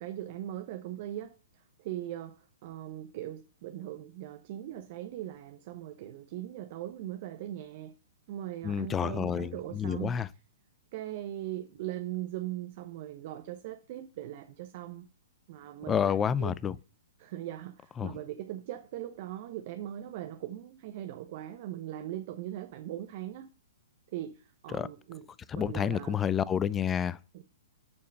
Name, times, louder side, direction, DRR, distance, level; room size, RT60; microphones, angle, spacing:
voice 1, 0.0-1.4 1.8-8.0 8.3-10.2 10.9-15.1 15.5-16.6 17.2-23.5 24.1-25.3 25.5-26.2 27.3-27.4, right 13 dB, 45° right, 0.7 m, -40 dB
voice 2, 8.6-10.3 15.9-16.8 18.0-18.2 24.7-24.9 25.5-27.2, left 8 dB, 20° left, 0.4 m, -29 dB
8.4 x 4.5 x 6.5 m
hypercardioid pair, 120°, 0 cm